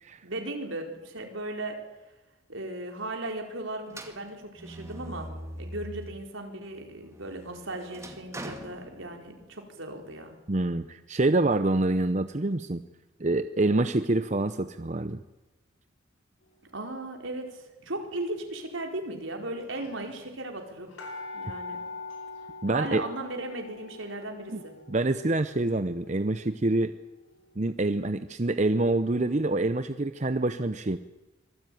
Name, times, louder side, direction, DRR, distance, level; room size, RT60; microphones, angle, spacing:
voice 1, 0.2-1.8 2.5-10.4 16.7-20.9 21.3-21.8 22.7-24.8, right 2 dB, 75° right, 3 dB, 4.6 m, -37 dB
sound 1, 3.9-6.3 6.7-9.6, right 1 dB, 15° right, 2.0 m, -43 dB
voice 2, 10.5-12.8 13.2-15.2 22.6-23.0 24.5-24.6 24.9-26.9 27.6-31.0, right 2 dB, 35° right, 10 dB, 0.7 m, -26 dB
sound 2, 17.8-18.2 19.0-19.1 19.3-19.4 19.6-27.2 27.7-27.8, left 3 dB, 90° left, 7.1 m, -44 dB
25.5 x 18.5 x 9.3 m, 1.1 s
head